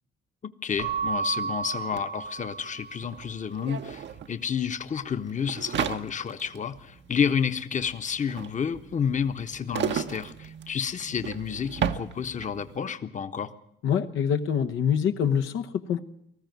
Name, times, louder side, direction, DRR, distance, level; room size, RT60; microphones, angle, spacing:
voice 1, 0.6-13.5, left 7 dB, 40° left, 9 dB, 1.1 m, -30 dB
Keyboard (musical) / Bell, 0.8-3.2, right 6 dB, 90° right, 4.0 m, -32 dB
sound 1, 2.0-12.7, right 8 dB, 65° right, 1.1 m, -35 dB
voice 2, 13.8-16.0, left 8 dB, 80° left, 6 dB, 1.1 m, -25 dB
19.5 x 14.0 x 9.3 m, 0.75 s
cardioid pair, 90°, 20 cm